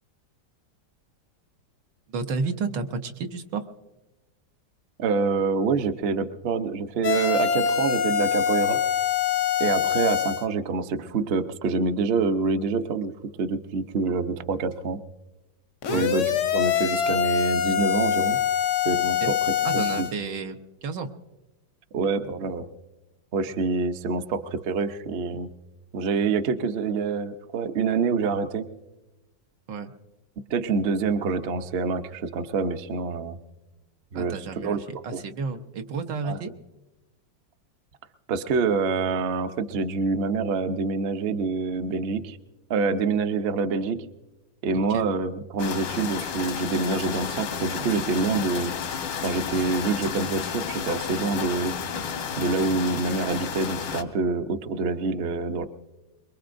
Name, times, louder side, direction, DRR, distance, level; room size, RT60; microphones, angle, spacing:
voice 1, 2.1-3.6 15.9-16.1 19.2-19.3 19.6-21.1 29.7-29.9 34.1-36.5 44.7-45.0, right 4 dB, 75° right, 6 dB, 1.6 m, -31 dB
voice 2, 5.0-8.8 9.6-13.1 13.4-15.0 15.9-18.4 18.8-20.1 21.9-22.7 23.3-25.5 25.9-28.7 30.5-33.4 34.1-34.8 35.1-35.2 36.2-36.4 38.3-42.4 42.7-44.1 44.6-48.7 49.2-51.8 52.4-55.7, right 4 dB, 55° right, 8 dB, 0.6 m, -26 dB
sound 1, 7.0-10.5 15.8-20.1, left 8 dB, 65° left, 0.8 m, -24 dB
sound 2, 45.6-54.0, left 7 dB, 85° left, 1.8 m, -32 dB
24.0 x 22.5 x 2.6 m, 1.1 s
omnidirectional pair, 2.0 m